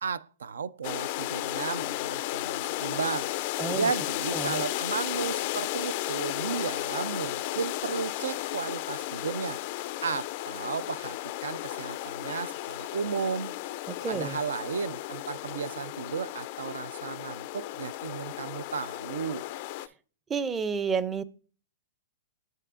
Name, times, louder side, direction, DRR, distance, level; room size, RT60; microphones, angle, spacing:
voice 1, 0.0-3.3 3.7-9.6 10.0-13.5 14.1-19.5, right 6 dB, 85° right, 0.3 m, -34 dB
sound 1, 0.8-19.9, left 16 dB, 50° left, 0.3 m, -34 dB
voice 2, 3.6-3.9 4.3-4.6 13.9-14.4 20.3-21.2, right 5 dB, 15° right, 0.4 m, -30 dB
9.1 x 6.8 x 2.4 m
hypercardioid pair, 130°, 0 cm